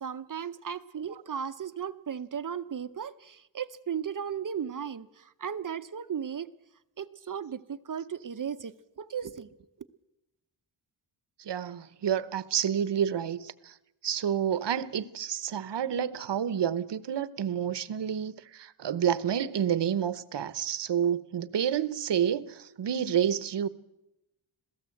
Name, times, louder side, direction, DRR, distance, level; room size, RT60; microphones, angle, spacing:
voice 1, 0.0-6.5 7.0-9.5, right 7 dB, 40° right, 0.8 m, -36 dB
voice 2, 11.4-13.8 14.0-23.7, right 9 dB, 60° right, 1.0 m, -29 dB
26.5 x 17.0 x 7.8 m
wide cardioid pair, 140°, 47 cm